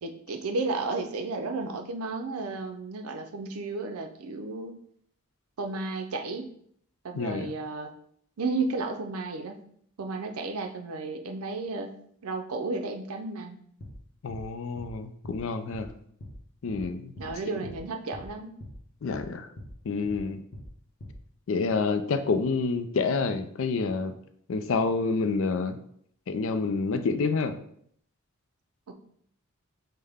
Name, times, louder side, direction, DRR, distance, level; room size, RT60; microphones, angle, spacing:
voice 1, 0.0-4.7 5.6-6.5 7.0-7.9 8.4-9.6 10.0-11.9 12.2-13.6 17.1-18.5 28.9-29.0, right 3 dB, 75° right, 5 dB, 0.5 m, -33 dB
voice 2, 7.2-7.5 14.2-15.9 16.6-17.1 19.0-19.5 19.9-20.4 21.5-24.1 24.5-25.8 26.3-27.6, left 4 dB, 60° left, 9 dB, 0.4 m, -28 dB
sound 1, 13.8-14.0 14.3-14.4 14.8-14.9 15.2-15.4 15.7-15.9 16.2-16.4 16.7-16.8 17.2-17.3 17.6-17.8 18.1-18.3 18.6-18.8 19.1-19.2 19.6-19.7 20.0-20.2 20.5-20.7 21.0-21.2, left 1 dB, 45° left, 0.8 m, -42 dB
5.5 x 2.1 x 3.4 m, 0.66 s
head